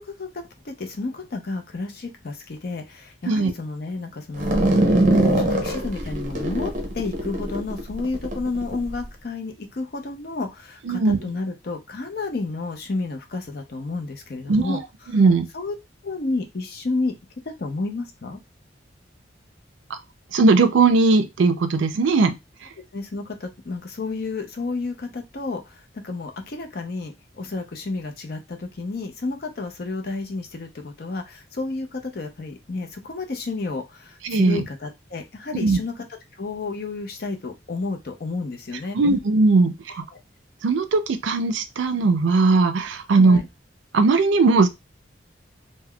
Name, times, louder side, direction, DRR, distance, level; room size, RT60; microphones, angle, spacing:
voice 1, 0.0-14.8 15.1-15.2 15.5-15.7 16.0-17.1 17.6-18.4 22.9-36.0 36.4-39.0 40.1-40.2 43.1-43.4, left 3 dB, 55° left, 0.6 m, -31 dB
sound 1, 4.4-9.0, right 1 dB, 45° right, 0.7 m, -22 dB
voice 2, 10.9-11.2 14.5-14.8 15.1-15.5 19.9-20.0 20.3-22.4 34.2-34.6 35.5-35.8 38.9-40.0 40.6-43.4 43.9-44.7, right 3 dB, 80° right, 0.5 m, -18 dB
3.5 x 2.1 x 2.2 m
head